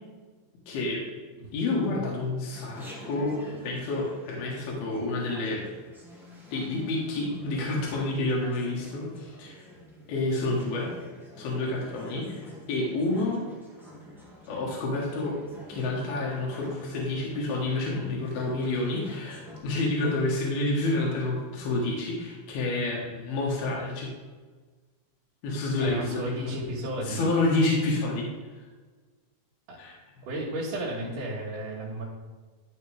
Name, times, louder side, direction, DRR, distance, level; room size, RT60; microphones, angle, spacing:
voice 1, 0.7-1.0 1.5-3.4 3.6-5.6 6.5-9.7 10.1-11.0 11.4-13.5 14.5-15.4 15.7-24.1 25.4-26.5 27.0-28.3 29.8-30.0, left 2 dB, 80° left, -3 dB, 3.3 m, -29 dB
Chatter, 2.5-19.6, left 1 dB, ahead, 0.7 m, -47 dB
voice 2, 25.8-27.3 29.7-29.8 30.2-32.0, right 1 dB, 65° right, -9 dB, 3.1 m, -33 dB
12.0 x 6.5 x 3.4 m, 1.4 s
omnidirectional pair, 4.3 m